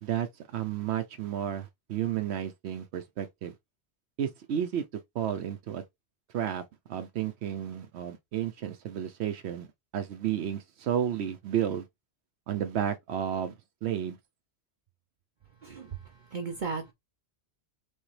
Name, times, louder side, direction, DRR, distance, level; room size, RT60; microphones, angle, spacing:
voice 1, 0.0-3.5 4.2-4.8 5.1-5.8 6.3-6.6 6.9-9.7 9.9-11.9 12.5-13.6 13.8-14.2, right 10 dB, 80° right, 0.9 m, -32 dB
voice 2, 15.6-16.0 16.3-16.9, right 5 dB, 50° right, 0.8 m, -35 dB
6.3 x 2.2 x 3.2 m
omnidirectional pair, 1.1 m